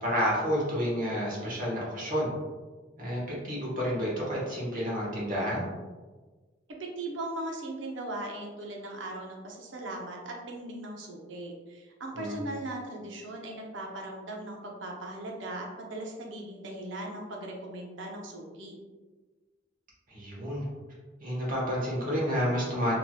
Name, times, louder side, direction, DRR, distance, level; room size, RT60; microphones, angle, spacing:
voice 1, 0.0-2.3 3.0-5.7 12.1-12.4 20.1-20.7 21.2-23.0, equal, 45° right, -5 dB, 1.1 m, -30 dB
voice 2, 6.7-18.8, right 1 dB, 75° right, 0 dB, 0.6 m, -39 dB
3.3 x 2.8 x 2.2 m, 1.3 s
head